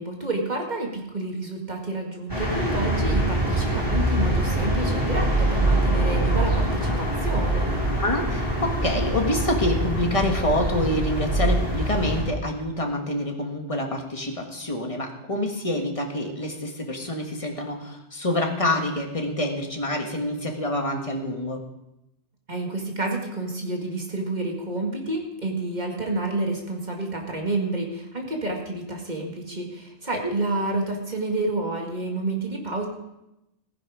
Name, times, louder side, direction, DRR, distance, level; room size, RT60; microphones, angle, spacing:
voice 1, 0.0-7.8 22.5-32.9, right 2 dB, 40° right, 1 dB, 2.2 m, -29 dB
sound 1, 2.3-12.2, right 1 dB, 20° right, 4.8 m, -24 dB
voice 2, 8.0-21.6, left 1 dB, 30° left, 2 dB, 1.7 m, -27 dB
16.0 x 10.0 x 5.0 m, 0.89 s
omnidirectional pair, 1.2 m